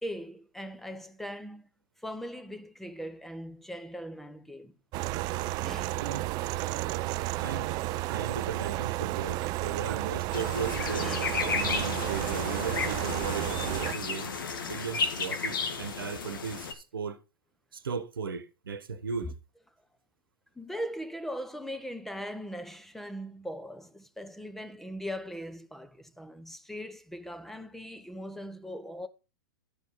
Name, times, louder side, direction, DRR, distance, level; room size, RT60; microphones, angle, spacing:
voice 1, 0.0-1.7 2.0-4.7 5.6-6.0 10.8-11.4 20.5-29.1, equal, ahead, 1.1 m, -40 dB
sound 1, 4.9-13.9, right 17 dB, 35° right, 0.5 m, -32 dB
voice 2, 7.3-11.1 11.5-17.2 17.7-19.3, right 6 dB, 80° right, 1.1 m, -37 dB
sound 2, 10.3-16.7, left 5 dB, 70° left, 2.1 m, -33 dB
12.0 x 5.0 x 5.4 m
hypercardioid pair, 110°, 11 cm